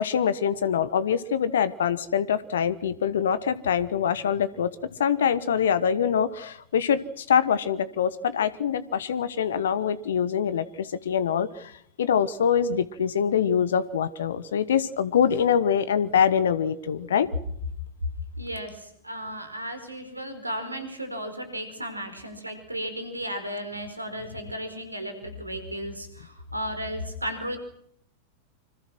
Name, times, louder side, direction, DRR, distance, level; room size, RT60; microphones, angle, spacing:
voice 1, 0.0-4.7 5.0-11.7 12.0-17.3, left 8 dB, 65° left, 17 dB, 1.2 m, -24 dB
voice 2, 18.4-27.6, equal, 85° right, 8 dB, 4.6 m, -34 dB
26.0 x 25.5 x 6.2 m, 0.70 s
figure-of-eight pair, 90°, 0 cm